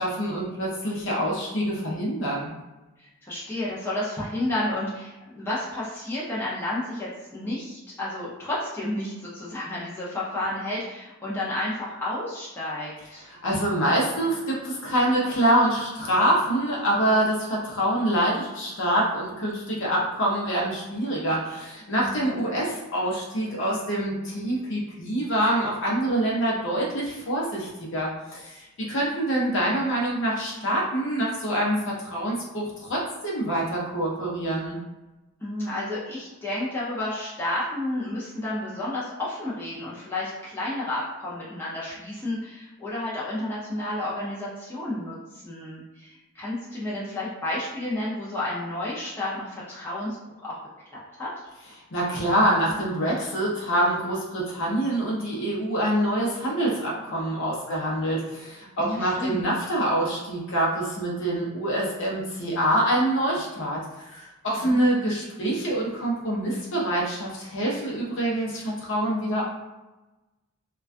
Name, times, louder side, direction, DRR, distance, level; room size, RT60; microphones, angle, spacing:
voice 1, 0.0-2.5 13.3-34.8 51.9-69.4, right 1 dB, 55° left, -4 dB, 0.7 m, -25 dB
voice 2, 3.0-13.2 22.0-22.4 35.4-50.2 50.4-50.6 50.9-51.3 58.8-59.4 64.5-64.8, left 1 dB, 10° left, -8 dB, 0.5 m, -31 dB
2.2 x 2.2 x 2.5 m, 1.1 s
head